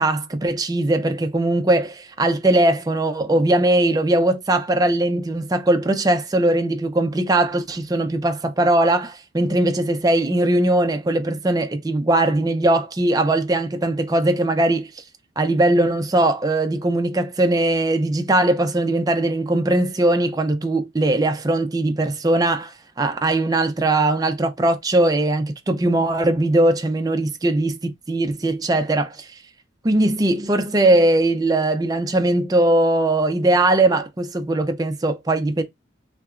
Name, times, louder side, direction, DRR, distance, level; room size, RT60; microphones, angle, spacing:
voice 1, 0.0-15.0 15.4-29.4 29.8-35.6, right 1 dB, 20° right, 0.4 m, -20 dB
3.4 x 2.8 x 2.4 m
head